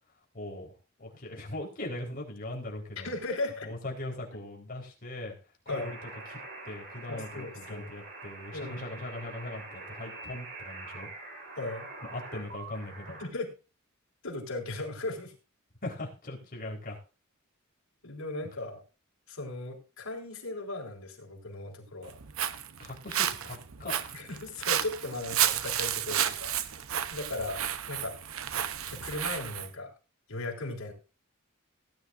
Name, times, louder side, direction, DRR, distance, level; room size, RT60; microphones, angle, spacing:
voice 1, 0.3-3.1 3.6-5.3 5.7-11.1 12.0-13.2 15.8-17.0 22.8-24.1, left 1 dB, 45° left, -2 dB, 4.1 m, -40 dB
voice 2, 3.0-3.7 5.7-5.9 7.1-7.9 8.5-9.0 11.6-11.9 13.2-13.5 14.2-15.3 18.0-18.8 19.3-22.2 24.1-26.6 27.1-28.2 28.9-29.9 30.3-30.9, left 2 dB, 80° left, 0 dB, 4.4 m, -37 dB
sound 1, 5.7-13.3, right 2 dB, 55° right, 4.8 m, -45 dB
Walk footsteps, 22.0-29.7, right 10 dB, 80° right, 0.8 m, -32 dB
18.0 x 10.5 x 2.6 m, 0.32 s
head